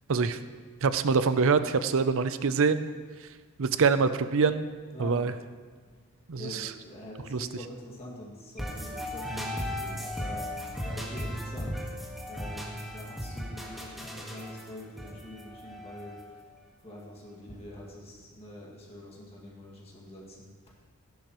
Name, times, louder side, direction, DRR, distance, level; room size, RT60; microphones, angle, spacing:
voice 1, 0.1-0.4 0.8-2.9 3.6-4.7 5.0-5.3 6.3-6.7 7.3-7.5, right 5 dB, 60° right, 12 dB, 0.6 m, -25 dB
voice 2, 4.9-5.3 5.9-6.0 6.4-11.8 12.3-16.4 16.8-20.6, left 1 dB, 25° left, -3 dB, 2.1 m, -45 dB
sound 1, 8.6-16.4, equal, ahead, 1.5 m, -37 dB
17.0 x 10.5 x 3.1 m, 1.5 s
head